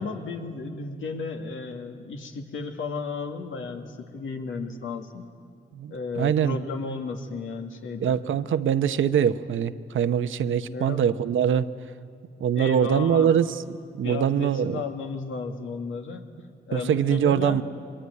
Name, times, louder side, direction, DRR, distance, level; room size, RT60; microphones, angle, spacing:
voice 1, 0.0-5.2 5.9-8.2 10.7-11.0 12.5-13.3 14.0-16.3 16.7-17.6, left 4 dB, 85° left, 4 dB, 2.3 m, -33 dB
voice 2, 5.7-6.6 8.0-11.7 12.4-14.8 16.7-17.6, right 8 dB, 85° right, 11 dB, 1.0 m, -23 dB
24.5 x 22.0 x 9.6 m, 2.3 s
cardioid pair, 55°, 20 cm